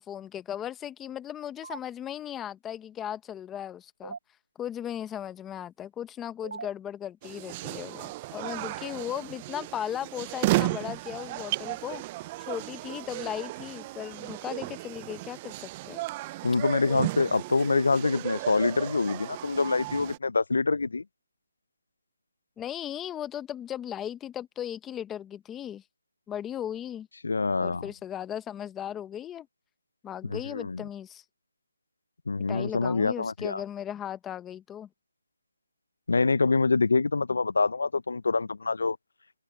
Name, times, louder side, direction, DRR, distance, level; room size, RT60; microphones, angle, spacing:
voice 1, 0.0-4.2 4.6-12.0 12.4-16.0 22.6-25.8 26.3-27.1 27.6-29.5 30.0-31.2 32.5-34.9, left 10 dB, 5° left, 0.8 m, -37 dB
sound 1, 1.6-1.8 4.0-4.2 6.4-6.7 8.8-9.2, right 4 dB, 55° right, 3.7 m, -39 dB
sound 2, 7.2-20.2, right 19 dB, 15° right, 0.3 m, -34 dB
voice 2, 16.4-21.0 27.2-27.9 30.3-30.8 32.3-33.6 36.1-39.0, left 3 dB, 65° left, 0.5 m, -25 dB
hypercardioid pair, 170°, 0 cm